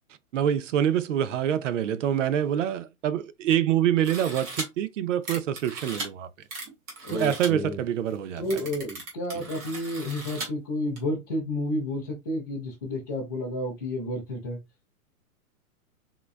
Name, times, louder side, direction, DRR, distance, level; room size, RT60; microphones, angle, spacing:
voice 1, 0.3-6.3 7.1-8.4 9.3-9.4, right 10 dB, 55° right, 0.5 m, -26 dB
sound 1, 4.0-4.6 5.2-6.1 6.5-7.5 8.1-8.2 8.4-10.5 11.0-11.1, right 2 dB, 20° right, 0.7 m, -37 dB
voice 2, 7.0-7.8 8.4-14.6, left 1 dB, 15° left, 0.4 m, -31 dB
3.7 x 2.2 x 2.4 m
hypercardioid pair, 155°, 45 cm